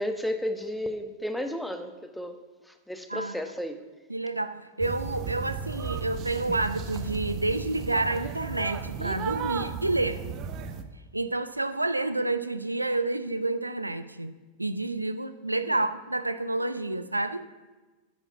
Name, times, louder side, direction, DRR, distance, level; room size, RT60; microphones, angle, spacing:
voice 1, 0.0-2.4 2.9-3.8, left 1 dB, ahead, 7 dB, 1.0 m, -32 dB
voice 2, 3.1-3.4 4.1-10.2 11.1-17.4, right 2 dB, 85° right, 12 dB, 0.5 m, -29 dB
sound 1, 4.8-10.8, right 6 dB, 35° right, 0.9 m, -35 dB
10.5 x 7.3 x 7.1 m, 1.3 s
figure-of-eight pair, 90°, 0 cm